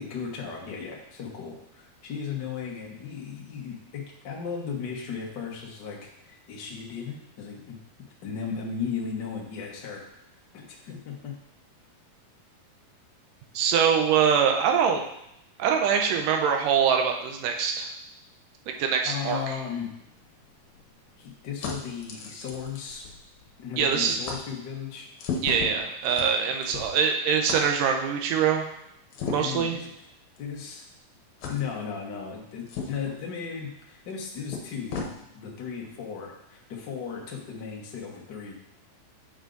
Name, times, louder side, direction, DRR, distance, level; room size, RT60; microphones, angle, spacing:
voice 1, 0.0-7.8 8.2-10.0 10.5-11.3 19.0-19.9 21.2-23.0 23.6-25.1 29.3-29.9 30.4-30.8 31.5-35.0 35.3-38.5, left 6 dB, 85° left, -2 dB, 0.9 m, -36 dB
voice 2, 13.5-15.0 15.6-17.9 18.7-19.4 23.8-24.2 25.4-28.6 29.3-29.8, right 7 dB, 80° right, 3 dB, 2.3 m, -23 dB
sound 1, 20.0-23.5 23.8-24.0 24.2-24.4 25.2-27.1 27.5-27.6 29.1-29.7 30.4-30.5 31.4-31.6 32.7-33.2 34.1-34.2 34.5-35.1, left 5 dB, 70° left, 2.2 m, -36 dB
8.1 x 5.0 x 3.9 m, 0.80 s
omnidirectional pair, 3.9 m